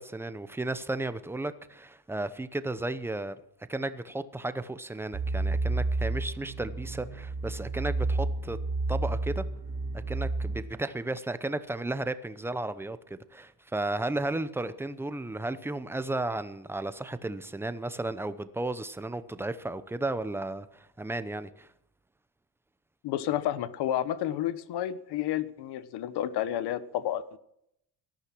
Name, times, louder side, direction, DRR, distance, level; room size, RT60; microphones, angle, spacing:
voice 1, 0.0-3.4 3.7-8.6 8.9-9.4 9.9-21.7, right 2 dB, 5° right, 12 dB, 0.7 m, -34 dB
sound 1, 5.1-10.6, right 2 dB, 30° right, 2.0 m, -31 dB
voice 2, 23.0-27.4, left 11 dB, 80° left, 15 dB, 1.3 m, -31 dB
18.0 x 13.5 x 6.1 m, 0.76 s
cardioid pair, 165°, 39 cm